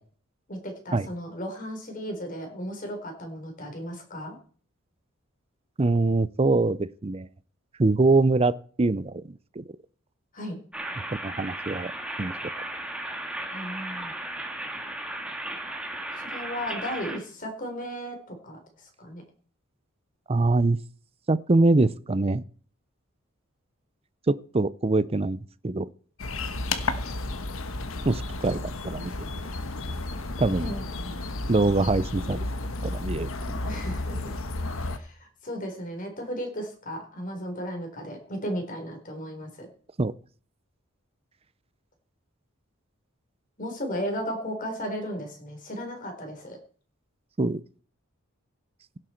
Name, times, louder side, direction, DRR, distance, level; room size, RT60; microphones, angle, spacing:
voice 1, 0.5-4.4 10.3-10.6 13.5-14.1 16.2-19.2 30.4-31.2 33.7-34.3 34.8-39.7 43.6-46.6, equal, 40° left, 4.1 m, -35 dB
voice 2, 5.8-7.3 7.8-9.6 11.2-11.9 12.2-12.3 20.3-20.8 21.3-22.4 24.3-25.9 28.1-29.1 30.4-30.7 31.5-32.5 32.8-33.6 40.0-40.1 47.4-47.6, right 2 dB, 30° right, 0.6 m, -24 dB
sound 1, 10.7-17.2, right 1 dB, 5° right, 1.9 m, -35 dB
sound 2, 26.2-35.0, left 2 dB, 90° left, 1.3 m, -32 dB
16.5 x 7.7 x 4.5 m
head